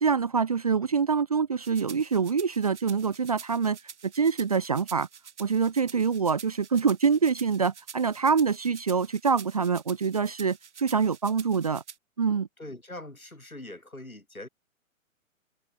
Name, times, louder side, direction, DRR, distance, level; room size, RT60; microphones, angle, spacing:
voice 1, 0.0-3.8 4.0-5.1 5.4-11.8 12.2-12.5, right 5 dB, 30° right, 0.4 m, -25 dB
sound 1, 1.6-12.0, right 7 dB, 55° right, 2.5 m, -47 dB
voice 2, 12.6-14.5, left 1 dB, 90° left, 4.2 m, -42 dB
figure-of-eight pair, 125°, 41 cm